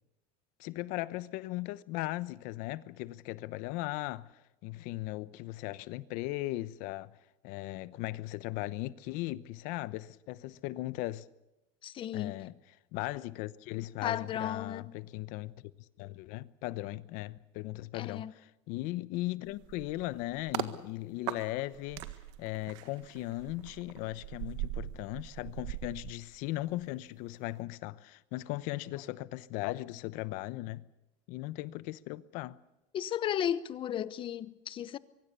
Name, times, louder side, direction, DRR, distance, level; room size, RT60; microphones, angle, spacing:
voice 1, 0.6-7.2 7.4-11.3 12.1-12.5 12.9-15.5 16.0-22.1 22.4-30.9 31.3-32.6, left 18 dB, 60° left, 0.9 m, -38 dB
voice 2, 11.8-12.4 14.0-15.0 17.9-18.3 32.9-35.0, left 10 dB, 35° left, 1.0 m, -34 dB
sound 1, 19.5-20.7 21.3-26.8 27.2-27.4, right 15 dB, 80° right, 1.7 m, -41 dB
24.5 x 23.5 x 6.9 m
cardioid pair, 145°, 15 cm